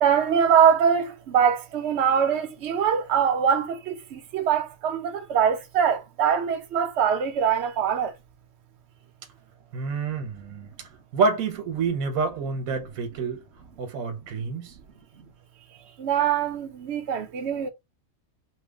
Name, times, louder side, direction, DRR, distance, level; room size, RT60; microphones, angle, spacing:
voice 1, 0.0-8.1 16.0-17.7, right 8 dB, 60° right, 1.0 m, -23 dB
voice 2, 9.7-10.7 11.1-13.4 13.8-14.7, right 4 dB, 75° right, 1.3 m, -27 dB
3.1 x 2.3 x 3.4 m
omnidirectional pair, 1.5 m